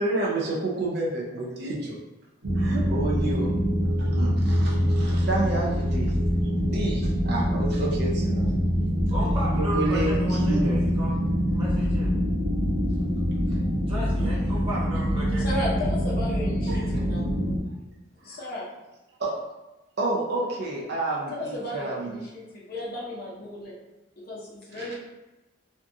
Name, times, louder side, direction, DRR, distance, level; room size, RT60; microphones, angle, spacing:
voice 1, 0.0-2.0 2.6-3.5 4.0-6.1 6.6-8.5 9.5-10.8 12.9-13.0 13.9-14.3 16.7-17.0 18.3-18.5 19.2-19.3 20.0-22.3 24.7-24.9, right 2 dB, 50° right, -3 dB, 0.4 m, -30 dB
sound 1, 2.4-17.6, equal, 90° right, 0.8 m, -24 dB
voice 2, 9.1-11.1 11.5-12.1 13.8-15.5, equal, 25° right, -9 dB, 1.0 m, -34 dB
voice 3, 15.4-17.3 18.2-18.6 21.3-23.7 24.3-24.9, left 1 dB, 45° left, -5 dB, 0.6 m, -34 dB
2.6 x 2.3 x 2.6 m, 1.1 s
head